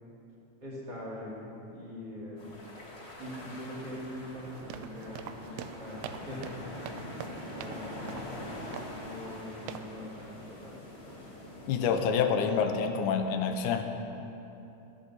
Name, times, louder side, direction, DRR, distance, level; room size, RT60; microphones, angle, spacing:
voice 1, 0.6-2.5 3.2-6.6 7.5-8.1 9.0-11.2, left 1 dB, 35° right, -7 dB, 2.5 m, -43 dB
sound 1, 2.4-11.9, left 1 dB, 60° left, 0.6 m, -44 dB
sound 2, 4.4-7.8 8.1-8.3 8.7-9.0 9.7-9.9, right 9 dB, 80° right, 1.7 m, -44 dB
voice 2, 11.7-13.8, left 6 dB, 90° left, 6 dB, 2.1 m, -27 dB
13.0 x 11.5 x 4.1 m, 3.0 s
omnidirectional pair, 3.6 m